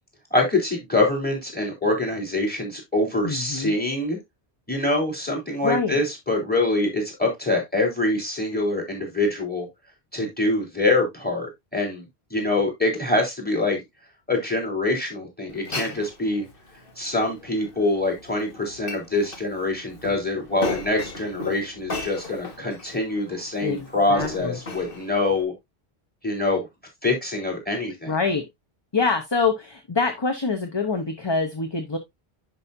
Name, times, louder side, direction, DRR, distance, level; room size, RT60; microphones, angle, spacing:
voice 1, 0.3-4.2 4.7-9.7 10.1-11.5 11.7-12.0 12.3-13.8 14.3-16.5 17.0-25.5 26.2-26.7 27.0-28.1, left 2 dB, 10° left, 3 dB, 3.8 m, -24 dB
voice 2, 3.2-3.7 5.6-6.0 15.7-16.0 23.6-24.6 28.1-28.5 28.9-32.0, left 4 dB, 25° left, 6 dB, 0.9 m, -25 dB
Glass, 15.5-25.4, left 2 dB, 60° left, 1.9 m, -37 dB
10.5 x 5.5 x 2.6 m, 0.18 s
omnidirectional pair, 1.1 m